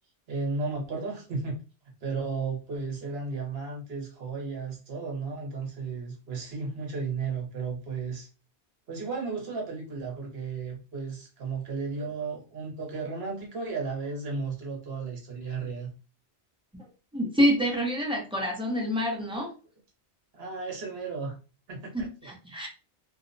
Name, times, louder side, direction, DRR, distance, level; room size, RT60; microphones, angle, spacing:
voice 1, 0.3-1.6 2.0-8.3 8.9-15.9 20.3-21.3 21.7-22.3, right 4 dB, 65° right, 0 dB, 1.0 m, -34 dB
voice 2, 17.1-19.5 21.9-22.7, equal, 5° right, -2 dB, 0.5 m, -27 dB
2.7 x 2.0 x 2.5 m, 0.34 s
omnidirectional pair, 1.1 m